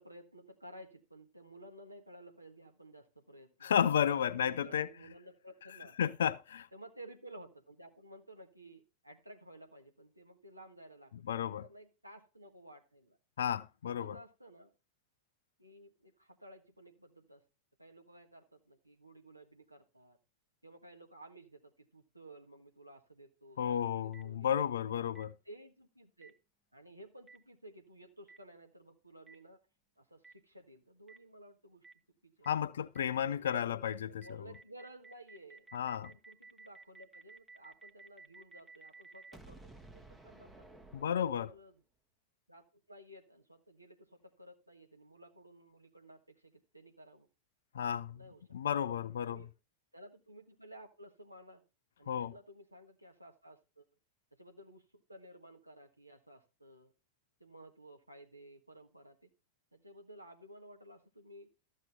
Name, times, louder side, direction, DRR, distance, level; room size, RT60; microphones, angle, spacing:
voice 1, 0.0-3.7 4.1-6.0 6.7-13.2 13.8-14.7 15.6-17.4 17.8-20.2 20.6-24.9 25.4-26.3 26.7-29.6 30.0-31.8 32.2-32.5 33.3-40.6 41.2-41.8 42.5-47.3 48.1-48.4 49.2-49.5 49.9-51.6 52.0-53.9 54.4-56.9 57.4-59.2 59.7-61.5, right 1 dB, 85° right, 1.6 m, -55 dB
voice 2, 3.6-4.9 6.0-6.7 11.3-11.6 13.4-14.2 23.6-25.3 32.5-34.2 35.7-36.1 40.9-41.5 47.7-48.2 48.5-49.4 52.1-52.3, left 9 dB, 65° left, 0.4 m, -32 dB
Boom, 24.1-24.2 25.1-25.2 26.2-26.3 27.3-27.4 28.3-28.4 29.3-29.4 30.2-30.3 31.1-31.2 31.8-31.9 32.4-32.5 32.9-33.0 33.4-33.5 33.8-33.9 34.2-41.8, right 3 dB, 10° right, 1.0 m, -55 dB
13.5 x 6.4 x 4.3 m
figure-of-eight pair, 90°, 0 cm